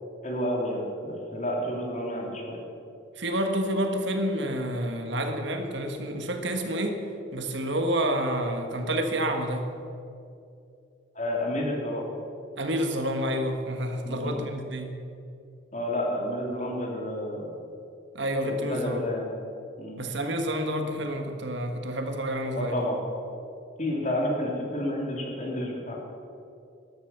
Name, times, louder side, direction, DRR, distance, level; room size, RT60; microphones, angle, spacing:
voice 1, 0.2-2.6 11.1-12.0 14.0-14.4 15.7-17.5 18.4-19.3 19.8-20.0 22.5-23.0 23.8-26.0, left 1 dB, 40° left, -1 dB, 2.8 m, -30 dB
voice 2, 3.2-7.0 7.3-9.7 12.6-15.0 18.1-19.0 20.0-22.8, equal, 70° right, 5 dB, 1.6 m, -29 dB
13.5 x 11.5 x 6.8 m, 2.6 s
head